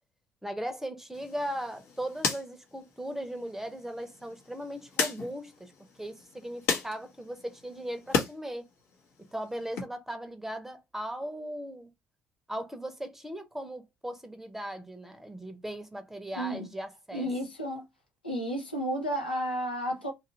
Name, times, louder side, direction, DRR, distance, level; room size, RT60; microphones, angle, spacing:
voice 1, 0.4-5.7 6.0-8.6 9.3-11.9 12.5-17.3, equal, 5° right, 0.7 m, -38 dB
sound 1, 1.1-8.3 8.7-9.8, left 5 dB, 60° left, 0.9 m, -36 dB
voice 2, 16.4-16.7 17.1-17.8 18.2-20.1, equal, 90° left, 0.7 m, -32 dB
2.7 x 2.5 x 2.9 m
figure-of-eight pair, 50°, 5 cm